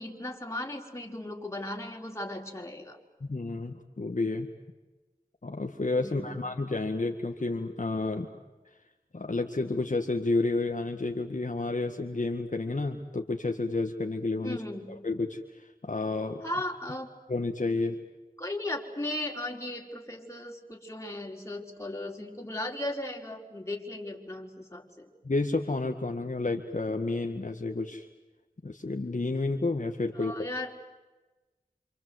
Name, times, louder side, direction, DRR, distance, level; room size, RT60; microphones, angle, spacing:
voice 1, 0.0-3.0 6.0-6.4 14.4-14.9 16.4-17.1 18.4-25.1 30.1-30.7, left 1 dB, 20° left, 1 dB, 4.5 m, -36 dB
voice 2, 3.2-4.5 5.4-8.3 9.1-14.6 14.9-16.4 17.3-18.0 25.2-28.0 28.6-30.3, left 3 dB, 55° left, 3 dB, 1.9 m, -30 dB
27.5 x 27.0 x 8.0 m, 1.1 s
wide cardioid pair, 45°, 15 cm